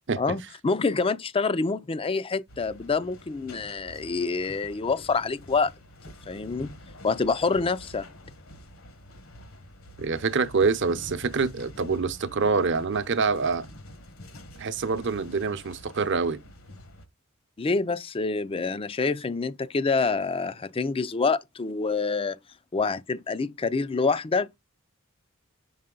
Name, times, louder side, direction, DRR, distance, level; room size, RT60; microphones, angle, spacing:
voice 1, 0.2-5.7 6.3-6.8 7.0-8.1 17.6-22.4 22.7-24.6, left 4 dB, 25° left, 0.4 m, -27 dB
sound 1, 2.5-17.0, left 1 dB, 70° left, 1.4 m, -47 dB
voice 2, 10.0-13.7 14.6-16.4, right 4 dB, 55° right, 0.7 m, -26 dB
6.4 x 5.5 x 3.8 m
head